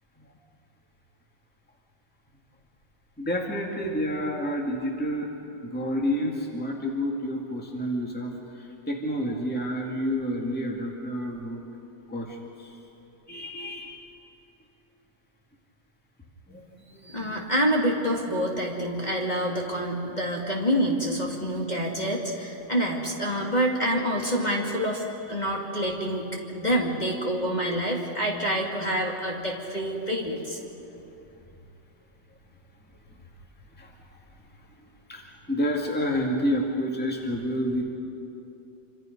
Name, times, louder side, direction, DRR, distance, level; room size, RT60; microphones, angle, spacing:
voice 1, 3.2-5.3 5.6-8.3 8.6-11.6 12.1-12.7 13.3-14.0 16.5-17.5 30.7-30.8 33.8-33.9 35.1-37.8, equal, 5° left, 0 dB, 2.1 m, -29 dB
voice 2, 17.1-25.0 25.3-30.6, equal, 20° left, -2 dB, 2.3 m, -27 dB
27.0 x 26.0 x 5.3 m, 2.9 s
omnidirectional pair, 2.0 m